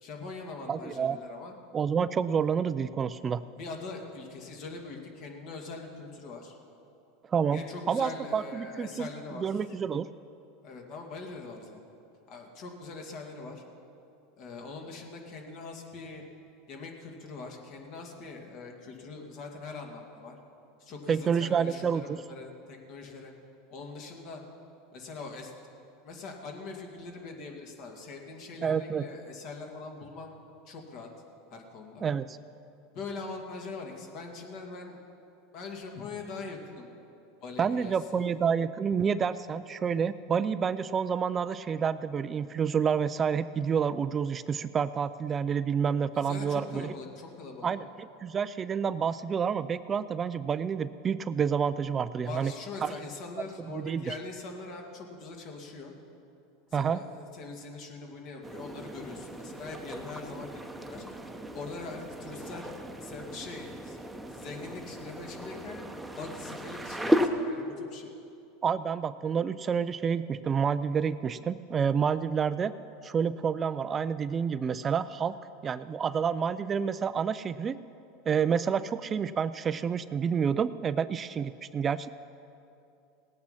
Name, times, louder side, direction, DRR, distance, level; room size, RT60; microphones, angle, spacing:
voice 1, 0.0-1.6 3.5-6.6 7.5-9.8 10.6-11.8 12.3-13.6 14.4-16.2 16.7-20.4 20.8-23.3 23.7-24.4 24.9-25.5 26.0-30.4 30.7-31.1 31.5-32.0 32.9-35.0 35.5-36.9 37.4-38.2 46.1-47.7 52.2-55.9 56.7-61.0 61.5-62.7 63.0-64.0 64.3-65.8 66.2-68.1, left 3 dB, 55° left, 2 dB, 2.2 m, -42 dB
voice 2, 0.7-1.2 1.7-3.4 7.3-9.1 9.4-10.1 21.1-22.2 28.6-29.0 32.0-32.4 37.6-46.9 47.6-52.5 52.8-52.9 53.7-54.1 56.7-57.0 68.6-72.7 73.0-75.3 75.6-77.8 78.3-82.1, right 7 dB, 25° right, 14 dB, 0.4 m, -29 dB
sound 1, 58.4-67.3, equal, 5° right, 0.9 m, -35 dB
18.5 x 8.7 x 5.7 m, 2.7 s
supercardioid pair, 115°, 0 cm